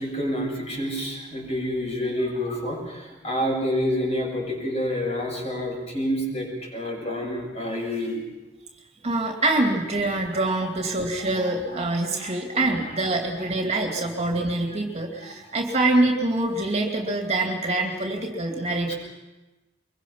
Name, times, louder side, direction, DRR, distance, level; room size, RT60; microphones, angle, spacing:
voice 1, 0.0-8.2 9.9-10.6 11.2-11.8 12.1-12.3 12.7-13.1 13.4-13.5 13.8-14.1 15.3-15.6 18.9-19.0, equal, 35° left, 0 dB, 7.0 m, -29 dB
voice 2, 9.0-18.9, right 2 dB, 35° right, 1 dB, 2.7 m, -25 dB
24.5 x 23.0 x 5.9 m, 1.1 s
head